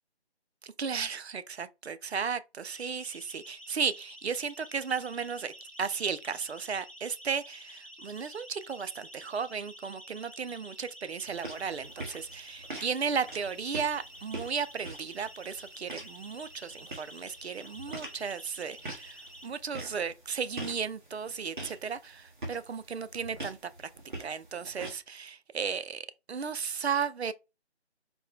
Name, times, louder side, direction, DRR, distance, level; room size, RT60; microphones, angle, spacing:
voice 1, 0.6-5.5 5.8-23.9 24.2-27.3, right 6 dB, 70° right, 0.5 m, -35 dB
Siren, 2.7-19.5, equal, 30° left, 0.4 m, -50 dB
sound 1, 11.3-25.0, right 2 dB, 45° right, 1.2 m, -45 dB
4.2 x 2.2 x 3.4 m
figure-of-eight pair, 165°, 34 cm